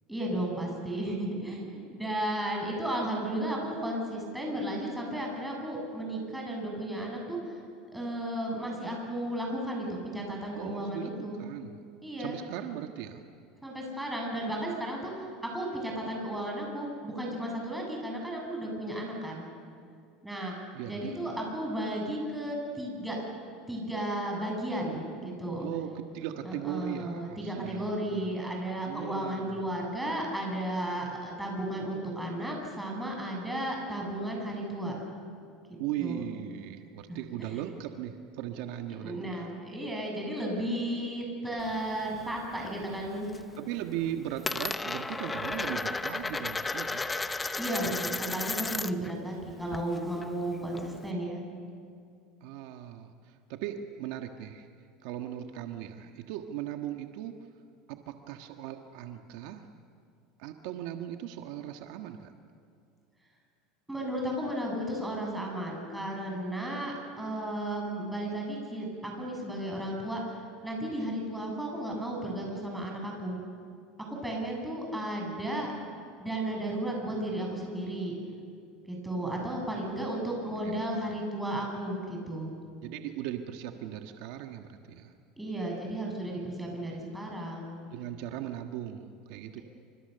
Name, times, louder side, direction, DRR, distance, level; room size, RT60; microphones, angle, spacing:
voice 1, 0.1-7.6 7.9-11.4 12.0-12.4 13.6-15.3 15.5-19.4 20.2-20.5 20.9-23.2 23.7-25.7 26.4-34.9 35.7-36.2 37.1-37.2 39.0-43.3 47.6-51.4 63.9-70.2 70.6-73.4 74.2-75.7 76.2-78.1 78.9-82.5 85.4-87.8 89.6-89.7, right 1 dB, 5° right, -1 dB, 7.8 m, -34 dB
voice 2, 10.5-11.8 12.2-13.2 20.7-21.2 25.6-28.3 28.8-29.7 35.8-39.5 43.6-47.1 52.4-54.7 55.0-57.3 57.9-59.6 60.4-62.3 79.7-80.1 80.6-80.9 82.8-85.1 87.9-89.6, right 11 dB, 70° right, 5 dB, 1.5 m, -38 dB
Coin (dropping), 41.6-42.7 43.1-43.6 43.8-49.1 49.4-51.1, left 3 dB, 15° left, 0.9 m, -34 dB
28.0 x 26.0 x 6.9 m, 2.3 s
supercardioid pair, 125°, 0 cm